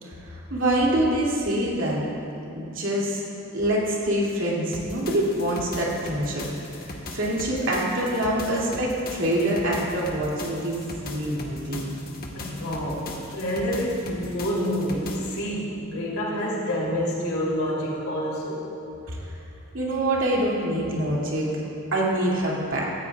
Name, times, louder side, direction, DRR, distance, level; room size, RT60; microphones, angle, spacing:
voice 1, 0.0-2.0 2.5-3.2 3.5-6.4 6.7-11.9 19.1-19.3 19.7-21.5 21.9-22.9, right 1 dB, 60° right, -5 dB, 2.7 m, -25 dB
sound 1, 4.7-15.4, left 2 dB, 45° left, 1.4 m, -39 dB
voice 2, 12.3-18.7, equal, 90° left, -5 dB, 3.1 m, -28 dB
17.5 x 14.0 x 2.4 m, 2.7 s
head